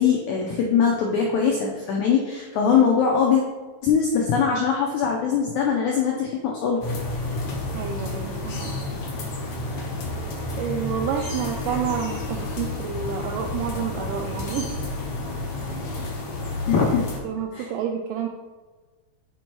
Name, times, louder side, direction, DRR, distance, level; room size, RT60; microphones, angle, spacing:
voice 1, 0.0-3.4 3.8-6.8 16.7-17.1 17.5-17.7, left 6 dB, 80° left, -1 dB, 1.7 m, -21 dB
sound 1, 6.8-17.2, left 2 dB, 60° left, 1.8 m, -30 dB
voice 2, 7.7-8.8 10.6-14.8 17.2-18.3, right 8 dB, 85° right, 3 dB, 1.9 m, -29 dB
6.3 x 4.5 x 4.5 m, 1.3 s
omnidirectional pair, 4.3 m